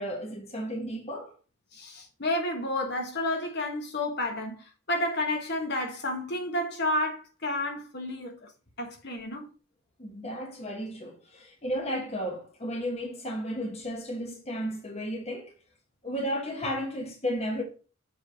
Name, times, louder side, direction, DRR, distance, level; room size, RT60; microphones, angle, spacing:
voice 1, 0.0-1.3 10.0-15.5 16.0-17.6, equal, 30° left, 1.2 m, -33 dB
voice 2, 1.7-8.5 8.8-9.5, left 1 dB, 50° left, 1.5 m, -31 dB
7.2 x 3.4 x 5.4 m
head